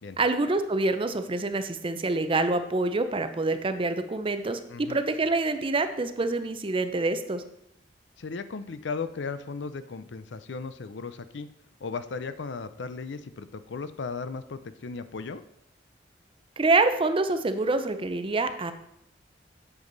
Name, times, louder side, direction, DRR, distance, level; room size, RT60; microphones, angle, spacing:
voice 1, 0.2-7.4 16.6-18.7, right 3 dB, 30° right, 9 dB, 0.6 m, -26 dB
voice 2, 8.2-11.5 11.8-15.4, left 4 dB, 70° left, 12 dB, 0.5 m, -36 dB
8.1 x 7.2 x 3.9 m, 0.79 s
head